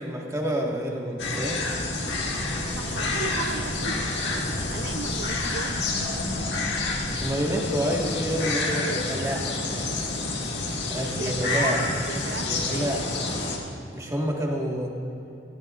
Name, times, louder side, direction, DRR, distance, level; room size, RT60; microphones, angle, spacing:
voice 1, 0.0-1.6 7.1-9.9 10.9-11.8 12.5-13.0 13.9-14.9, equal, 20° right, -2 dB, 1.5 m, -28 dB
sound 1, 1.2-13.6, left 2 dB, 70° left, 1.7 m, -29 dB
sound 2, 1.6-7.3, equal, 15° left, 1.9 m, -41 dB
voice 2, 2.7-6.1 11.1-13.3, right 4 dB, 80° right, 8 dB, 0.6 m, -36 dB
18.5 x 15.0 x 2.5 m, 2.8 s
head